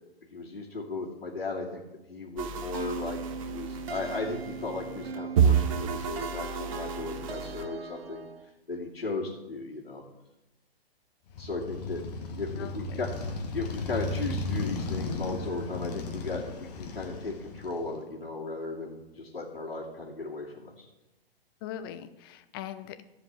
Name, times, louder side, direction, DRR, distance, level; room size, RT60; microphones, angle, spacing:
voice 1, 0.3-1.8 2.1-8.3 8.7-10.0 11.4-12.0 12.3-13.1 13.5-20.8, left 3 dB, 70° left, -6 dB, 2.6 m, -36 dB
sound 1, 2.4-7.6, right 7 dB, 35° right, 0.8 m, -30 dB
sound 2, 2.7-8.5, right 6 dB, 75° right, 0.7 m, -39 dB
Motorcycle, 11.3-18.0, left 3 dB, 40° left, 1.7 m, -35 dB
voice 2, 12.6-13.0 21.6-23.0, left 10 dB, 25° left, 10 dB, 0.6 m, -41 dB
14.5 x 5.1 x 7.1 m, 1.0 s
figure-of-eight pair, 120°, 31 cm